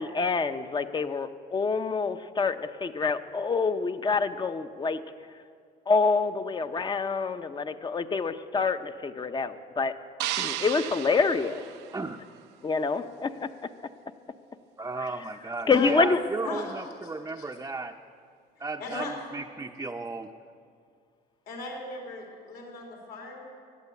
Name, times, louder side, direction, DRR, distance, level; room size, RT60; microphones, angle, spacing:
voice 1, 0.0-5.0 5.9-9.9 10.4-11.6 12.6-13.5 15.0-15.1 15.7-16.2, left 4 dB, 25° left, 10 dB, 0.8 m, -27 dB
sound 1, 10.2-12.5, right 13 dB, 90° right, 0.6 m, -34 dB
voice 2, 14.8-17.9 18.6-20.3, right 3 dB, 20° right, 1 dB, 0.6 m, -35 dB
voice 3, 16.4-16.9 17.4-17.5 18.6-19.1 21.5-23.4, left 3 dB, 75° left, 0 dB, 3.7 m, -38 dB
15.5 x 11.0 x 8.4 m, 2.2 s
cardioid pair, 110°, 17 cm